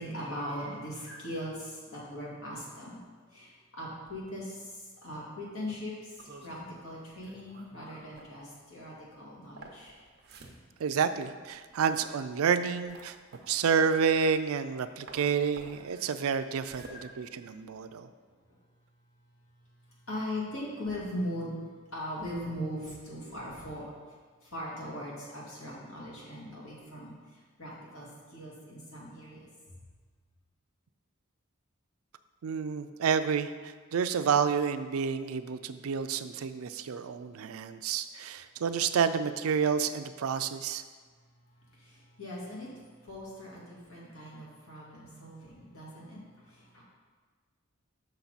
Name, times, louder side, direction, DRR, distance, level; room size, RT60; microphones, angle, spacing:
voice 1, 0.0-3.0 3.3-3.5 3.8-4.5 5.0-5.9 6.4-6.6 6.8-9.9 15.9-16.0 16.8-17.0 20.1-21.5 21.9-23.8 24.5-27.1 27.6-28.1 28.3-29.4 42.2-42.7 43.1-46.2 46.7-46.8, equal, 75° left, -5 dB, 2.1 m, -39 dB
sound 1, 6.1-14.8 15.1-18.0, right 2 dB, 50° right, 0.8 m, -53 dB
voice 2, 10.8-13.2 13.5-18.1 32.4-40.8, right 6 dB, 85° right, 11 dB, 0.4 m, -29 dB
6.5 x 5.8 x 4.0 m, 1.5 s
head